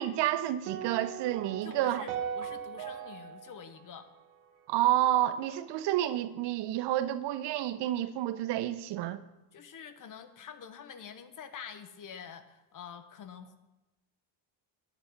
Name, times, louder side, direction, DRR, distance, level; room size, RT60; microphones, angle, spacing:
voice 1, 0.0-2.0 4.7-9.2, right 13 dB, 60° right, 0.7 m, -29 dB
sound 1, 0.7-5.0, right 8 dB, 80° right, 1.4 m, -40 dB
voice 2, 1.6-4.1 9.5-13.6, left 7 dB, 40° left, 0.9 m, -47 dB
9.7 x 8.0 x 5.1 m
cardioid pair, 110°, 48 cm